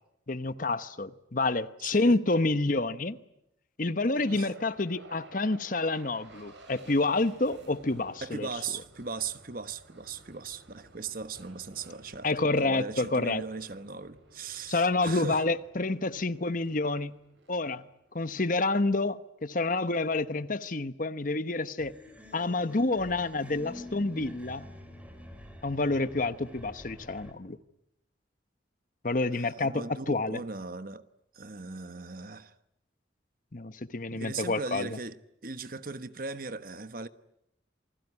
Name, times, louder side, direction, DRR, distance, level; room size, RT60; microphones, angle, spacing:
voice 1, 0.3-3.2 3.8-8.5 12.2-13.4 14.7-17.2 17.5-17.8 18.1-21.9 22.3-24.7 25.6-27.6 29.0-30.4 33.5-34.9, left 2 dB, 45° left, 1.0 m, -28 dB
voice 2, 1.8-2.2 4.1-4.5 8.2-15.4 29.3-31.1 31.3-32.5 34.1-37.1, right 4 dB, 50° right, 1.2 m, -39 dB
sound 1, 4.1-18.3, right 2 dB, 85° right, 7.1 m, -55 dB
sound 2, 21.8-27.3, left 1 dB, 5° right, 4.2 m, -47 dB
28.0 x 20.5 x 9.7 m
head